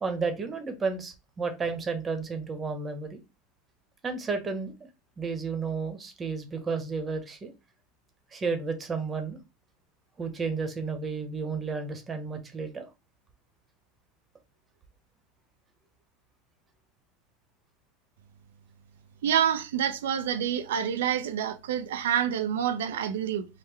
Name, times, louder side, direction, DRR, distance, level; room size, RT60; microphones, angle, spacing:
voice 1, 0.0-3.2 4.0-4.7 5.2-7.5 8.3-9.4 10.2-12.9, right 4 dB, 25° right, 0.9 m, -32 dB
voice 2, 19.2-23.5, right 9 dB, 90° right, 0.4 m, -27 dB
3.6 x 2.1 x 3.2 m
supercardioid pair, 110°, 0 cm